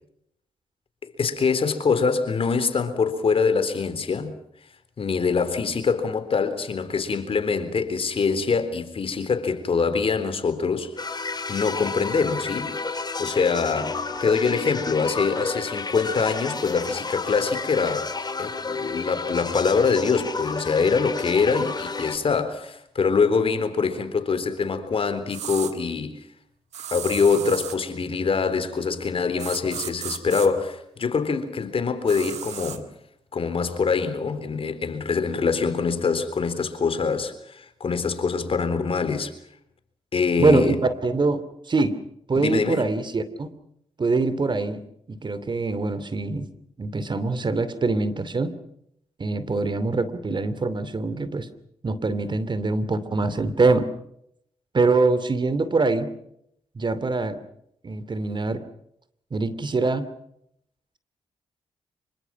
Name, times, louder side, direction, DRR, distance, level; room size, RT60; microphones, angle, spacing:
voice 1, 1.2-4.3 5.0-12.7 13.2-18.1 18.4-26.2 26.9-32.9 33.3-39.3 40.1-40.8 42.4-42.9, left 5 dB, 55° left, 3.7 m, -24 dB
sound 1, 11.0-22.2, left 4 dB, 40° left, 4.4 m, -31 dB
sound 2, 25.3-25.7 26.7-27.8 29.4-30.5 32.1-32.8, right 10 dB, 80° right, 2.0 m, -34 dB
voice 2, 40.4-42.0 42.3-43.5 44.0-44.8 45.1-46.5 46.8-48.5 49.2-51.5 51.8-53.9 54.7-56.1 56.7-57.4 57.8-58.6 59.3-60.1, right 3 dB, 45° right, 2.7 m, -24 dB
26.5 x 24.0 x 6.0 m
supercardioid pair, 55°, 11 cm